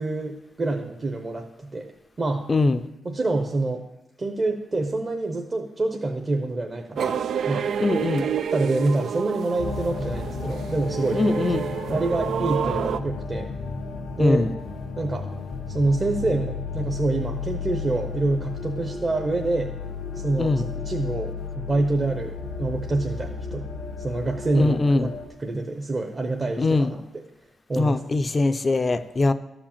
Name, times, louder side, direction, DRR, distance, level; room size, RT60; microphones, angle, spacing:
voice 1, 0.0-1.9 2.2-2.5 3.0-3.8 4.2-7.2 7.5-7.7 8.2-11.4 11.9-13.5 14.2-14.5 15.0-15.3 15.7-19.7 20.1-23.7 24.0-25.1 25.4-27.0 27.7-28.0, right 2 dB, 30° right, 3 dB, 0.9 m, -26 dB
voice 2, 2.5-2.8 7.8-8.2 11.1-11.6 14.2-14.5 20.4-20.6 24.6-25.1 26.6-26.9 27.8-29.3, left 3 dB, 30° left, 11 dB, 0.6 m, -22 dB
sound 1, 7.0-13.0, right 8 dB, 70° right, 0.4 m, -29 dB
sound 2, 9.6-25.3, left 4 dB, 85° left, 1.6 m, -33 dB
12.5 x 5.0 x 7.3 m, 0.91 s
cardioid pair, 90°, 0 cm